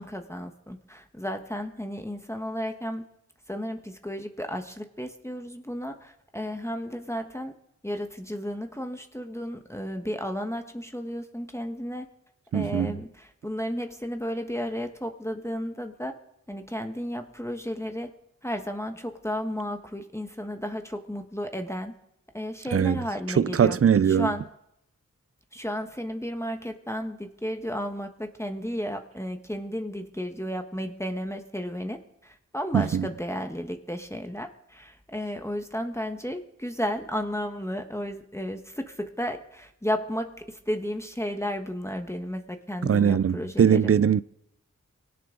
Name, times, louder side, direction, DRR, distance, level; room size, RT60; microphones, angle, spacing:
voice 1, 0.0-3.0 3.5-7.5 7.8-12.1 12.5-16.1 16.5-18.1 18.4-21.9 22.3-23.8 24.1-24.4 25.5-43.9, equal, 10° left, 1.4 m, -33 dB
voice 2, 12.5-13.0 22.7-24.3 32.7-33.1 42.8-44.2, right 8 dB, 45° right, 0.5 m, -21 dB
20.5 x 17.5 x 3.9 m
cardioid pair, 40°, 31 cm